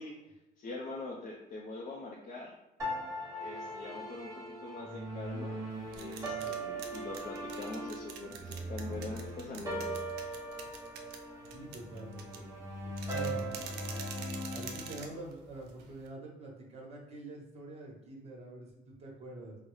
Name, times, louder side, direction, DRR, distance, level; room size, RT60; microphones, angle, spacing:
voice 1, 0.0-2.6 3.4-10.2, left 2 dB, 50° left, -2 dB, 0.5 m, -44 dB
sound 1, 2.8-15.0, right 1 dB, 20° right, 1.0 m, -39 dB
sound 2, 5.7-16.1, right 6 dB, 80° right, 0.5 m, -48 dB
voice 2, 11.5-13.6 14.5-19.6, right 2 dB, 40° right, -1 dB, 1.1 m, -46 dB
3.8 x 2.1 x 3.1 m, 0.98 s
cardioid pair, 110°, 17 cm